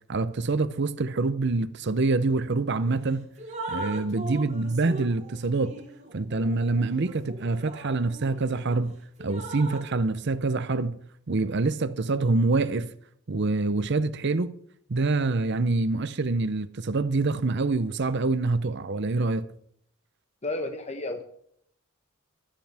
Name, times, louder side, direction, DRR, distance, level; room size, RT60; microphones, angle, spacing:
voice 1, 0.1-3.3 3.7-5.8 6.1-11.0 11.3-12.9 13.3-14.5 14.9-19.5, right 3 dB, 55° right, 0.7 m, -26 dB
Drip, 2.8-3.0 3.4-8.8 9.2-9.9, right 2 dB, 35° right, 2.2 m, -39 dB
voice 2, 20.4-21.2, left 2 dB, 30° left, 1.0 m, -32 dB
25.0 x 9.9 x 3.5 m
head